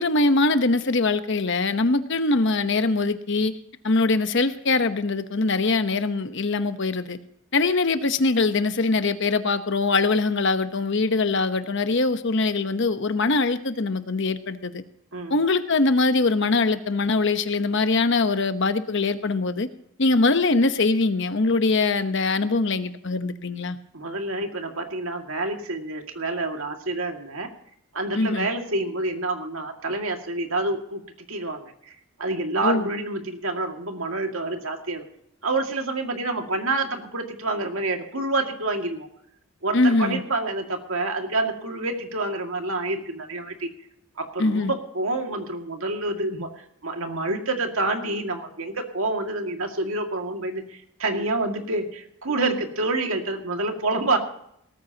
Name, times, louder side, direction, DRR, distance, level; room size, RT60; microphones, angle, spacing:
voice 1, 0.0-3.5 3.8-7.2 7.5-14.8 15.3-19.7 20.0-23.8 28.1-28.5 32.6-32.9 39.7-40.2 44.4-44.7, left 3 dB, 55° left, 10 dB, 0.9 m, -22 dB
voice 2, 23.9-27.5 27.9-31.0 31.3-31.9 32.2-35.0 35.4-39.1 39.6-43.7 44.2-46.5 46.8-54.2, right 2 dB, 70° right, 4 dB, 2.1 m, -28 dB
18.0 x 14.0 x 2.9 m, 0.71 s
head